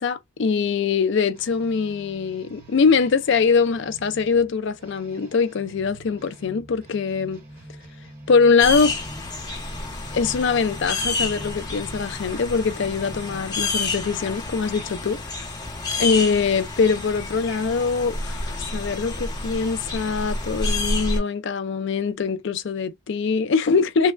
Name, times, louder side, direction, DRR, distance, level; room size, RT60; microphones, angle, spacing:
voice 1, 0.0-7.4 8.3-8.9 10.1-15.2 16.0-24.1, left 5 dB, 60° left, 0.4 m, -22 dB
sound 1, 1.3-13.6, right 1 dB, 45° right, 1.4 m, -45 dB
sound 2, 8.6-21.2, left 2 dB, 20° left, 1.0 m, -29 dB
3.2 x 2.3 x 2.4 m
head